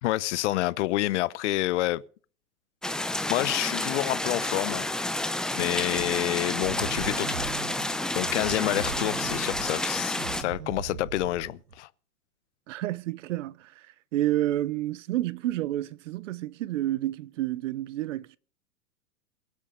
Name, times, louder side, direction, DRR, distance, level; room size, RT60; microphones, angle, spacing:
voice 1, 0.0-2.0 3.3-4.9 5.5-7.4 8.1-11.9, left 17 dB, 50° left, 0.8 m, -28 dB
sound 1, 2.8-10.4, left 1 dB, ahead, 0.6 m, -30 dB
sound 2, 6.0-11.8, right 7 dB, 85° right, 1.3 m, -39 dB
voice 2, 12.7-13.9 14.1-18.4, right 14 dB, 50° right, 0.8 m, -29 dB
23.0 x 8.4 x 3.9 m
hypercardioid pair, 115°, 47 cm